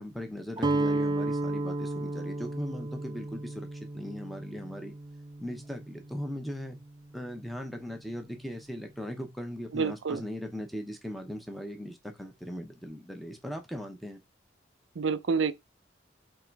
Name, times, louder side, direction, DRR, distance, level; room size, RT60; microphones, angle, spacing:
voice 1, 0.0-4.9 5.4-6.8 7.1-14.2, equal, ahead, 0.8 m, -39 dB
Guitar, 0.6-6.6, right 2 dB, 25° right, 0.4 m, -33 dB
voice 2, 9.7-10.2 15.0-15.5, right 5 dB, 85° right, 0.5 m, -28 dB
3.8 x 3.0 x 4.6 m
head